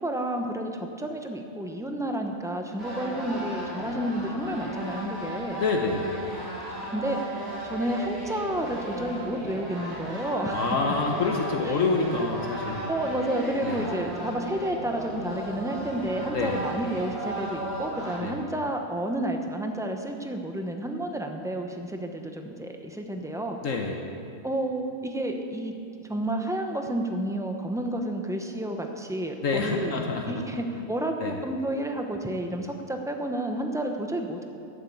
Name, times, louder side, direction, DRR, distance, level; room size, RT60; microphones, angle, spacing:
voice 1, 0.0-5.6 6.9-10.6 12.9-23.6 24.4-25.7 26.1-29.9 30.3-34.5, right 1 dB, 5° right, 3 dB, 0.6 m, -30 dB
sound 1, 2.8-18.2, equal, 70° right, 3.5 m, -35 dB
voice 2, 5.6-6.1 10.5-12.9 13.6-13.9 16.3-16.6 18.2-18.4 23.6-24.0 29.4-30.4 30.7-30.8 31.2-31.4, left 3 dB, 65° left, 1 dB, 1.3 m, -27 dB
12.5 x 7.3 x 8.5 m, 2.6 s
omnidirectional pair, 1.5 m